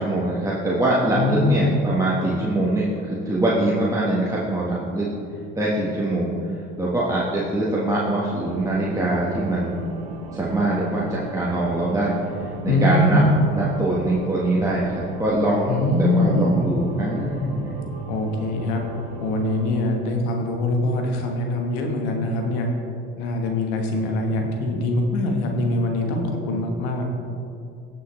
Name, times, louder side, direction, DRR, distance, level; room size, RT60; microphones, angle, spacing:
voice 1, 0.0-5.1 5.5-6.3 6.8-9.8 10.3-12.1 12.6-13.2 13.5-17.8, right 1 dB, 10° right, -6 dB, 1.5 m, -23 dB
voice 2, 1.1-1.6 12.7-13.3 15.7-16.6 18.1-18.8 19.2-22.7 23.2-27.0, left 2 dB, 85° left, 2 dB, 1.4 m, -23 dB
sound 1, 8.3-19.7, right 4 dB, 90° right, 1.0 m, -37 dB
16.0 x 6.2 x 3.3 m, 2.5 s
supercardioid pair, 80°, 31 cm